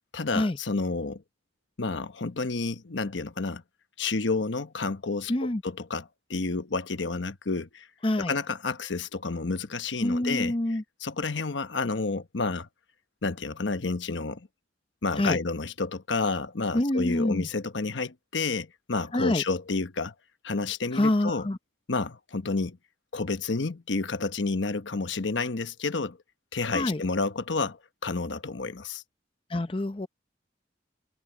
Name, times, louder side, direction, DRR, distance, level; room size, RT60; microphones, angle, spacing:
voice 1, 0.1-1.2 1.8-3.6 4.0-7.9 8.2-12.7 13.2-14.5 15.0-20.1 20.4-21.5 21.9-22.8 23.1-26.2 26.5-29.0, left 3 dB, 80° left, 1.1 m, -30 dB
voice 2, 5.3-5.6 8.0-8.4 10.0-10.8 15.2-15.4 16.7-17.5 19.1-19.4 20.9-21.6 26.7-27.0 29.5-30.1, left 1 dB, 30° left, 0.7 m, -26 dB
head